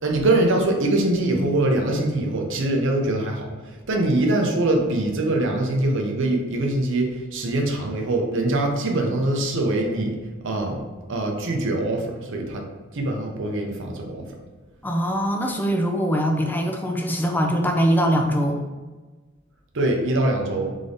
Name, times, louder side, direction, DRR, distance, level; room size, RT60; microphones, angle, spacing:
voice 1, 0.0-10.2 10.4-10.8 11.1-12.6 12.9-14.3 19.7-20.7, right 2 dB, 65° right, 2 dB, 0.7 m, -23 dB
voice 2, 14.8-18.6, equal, 10° left, 3 dB, 0.4 m, -22 dB
3.7 x 3.4 x 3.9 m, 1.3 s
head